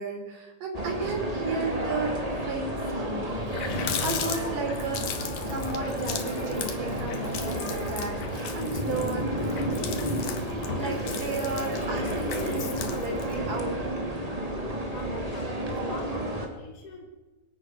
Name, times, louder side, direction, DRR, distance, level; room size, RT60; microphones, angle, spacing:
voice 1, 0.0-3.3 4.0-10.1 10.7-13.9, right 3 dB, 75° right, 1 dB, 5.8 m, -34 dB
sound 1, 0.7-16.5, right 1 dB, 10° right, 2.6 m, -31 dB
Water tap faucet, 2.9-3.0 3.3-13.4, left 6 dB, 70° left, 3.1 m, -36 dB
voice 2, 14.8-17.1, left 3 dB, 30° left, 1 dB, 3.0 m, -45 dB
22.0 x 13.0 x 9.5 m, 1.2 s
omnidirectional pair, 3.7 m